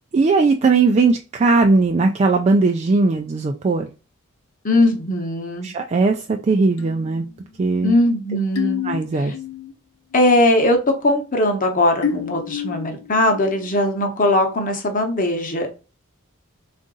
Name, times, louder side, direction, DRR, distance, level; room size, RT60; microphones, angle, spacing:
voice 1, 0.1-3.9 5.6-7.3 7.6-7.9 8.8-9.3, right 3 dB, 30° right, 4 dB, 0.3 m, -18 dB
voice 2, 4.6-5.7 7.8-8.8 9.2-9.3 10.1-15.7, left 1 dB, 40° left, 3 dB, 0.9 m, -19 dB
sound 1, 6.8-9.8 10.1-10.5 12.0-13.9, left 8 dB, 80° left, 0.6 m, -30 dB
3.8 x 2.5 x 3.8 m, 0.33 s
head